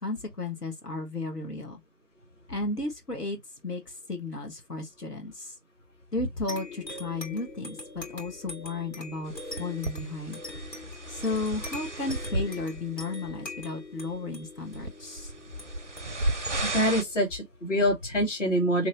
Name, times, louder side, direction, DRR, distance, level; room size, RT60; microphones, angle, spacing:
voice 1, 0.0-1.8 2.5-3.4 3.6-5.5 6.1-10.4 11.1-15.3, left 3 dB, 70° left, 1.5 m, -34 dB
sound 1, 6.5-17.6, left 2 dB, 85° left, 2.2 m, -43 dB
sound 2, 9.3-12.9 13.2-13.6 14.1-14.2 14.7-17.0, right 2 dB, 50° right, 0.5 m, -34 dB
voice 2, 16.6-18.9, equal, 45° left, 1.4 m, -25 dB
3.2 x 2.6 x 4.0 m
figure-of-eight pair, 160°, 49 cm